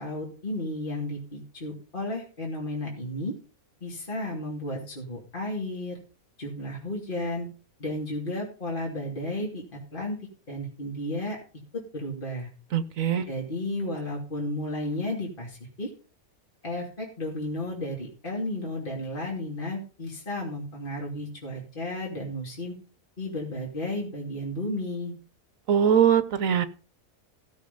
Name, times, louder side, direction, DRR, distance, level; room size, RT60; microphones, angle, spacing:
voice 1, 0.0-3.3 3.8-6.0 6.4-7.5 7.8-9.6 9.9-10.2 10.5-11.4 11.7-12.5 13.3-15.9 16.6-22.7 23.2-25.1, left 1 dB, 35° left, -3 dB, 2.9 m, -33 dB
voice 2, 12.7-13.2 25.7-26.7, right 8 dB, 70° right, 12 dB, 1.2 m, -21 dB
16.0 x 6.5 x 5.4 m, 0.37 s
omnidirectional pair, 1.5 m